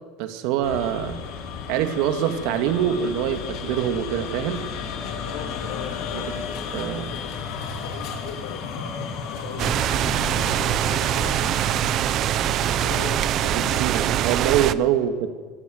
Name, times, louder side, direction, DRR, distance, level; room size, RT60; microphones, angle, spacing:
voice 1, 0.2-1.2 1.7-4.6 6.1-6.2 6.7-7.1 13.5-15.3, right 10 dB, 60° right, 7 dB, 2.4 m, -24 dB
sound 1, 0.6-14.5, left 5 dB, 50° left, 5.1 m, -34 dB
sound 2, 3.0-14.6, left 4 dB, 5° right, 5.3 m, -48 dB
voice 2, 5.1-11.5 12.5-14.1 14.9-15.3, left 8 dB, 80° left, 8 dB, 4.9 m, -41 dB
sound 3, 9.6-14.7, right 11 dB, 35° right, 0.9 m, -23 dB
25.0 x 25.0 x 8.2 m, 1.4 s
cardioid pair, 170°, 0 cm